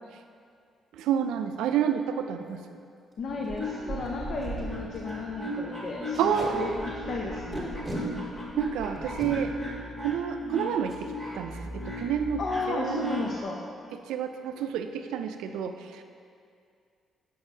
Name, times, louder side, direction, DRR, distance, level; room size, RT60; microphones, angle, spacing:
voice 1, 0.9-2.8 6.2-6.8 8.6-9.5 10.0-13.3 13.9-16.0, right 8 dB, 90° right, 7 dB, 0.3 m, -30 dB
Packing tape duct tape, 2.5-2.7 3.1-3.2 3.4-3.6 4.1-4.2 4.4-4.6 4.9-5.1 6.1-6.5 7.5-8.0 9.0-9.3 10.8-11.0 11.4-11.6 11.8-12.2, right 1 dB, 15° right, 1.5 m, -36 dB
voice 2, 3.2-6.7 7.1-7.7 12.4-13.6, left 3 dB, 55° left, -1 dB, 0.5 m, -34 dB
sound 1, 3.2-13.4, equal, 25° left, 1.3 m, -37 dB
6.9 x 5.3 x 2.7 m, 2.3 s
cardioid pair, 90°, 0 cm